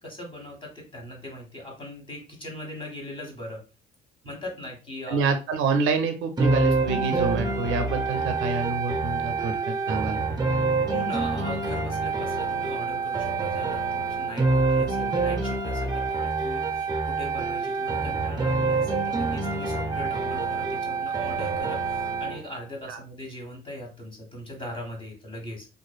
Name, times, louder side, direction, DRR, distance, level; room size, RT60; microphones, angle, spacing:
voice 1, 0.0-3.6 4.2-5.2 10.9-25.7, left 1 dB, 25° left, 0 dB, 1.2 m, -40 dB
voice 2, 5.1-10.2 22.9-23.0, right 4 dB, 90° right, 7 dB, 0.4 m, -27 dB
sound 1, 6.4-22.4, right 3 dB, 20° right, 0.4 m, -26 dB
2.5 x 2.5 x 2.2 m, 0.31 s
cardioid pair, 90°, 20 cm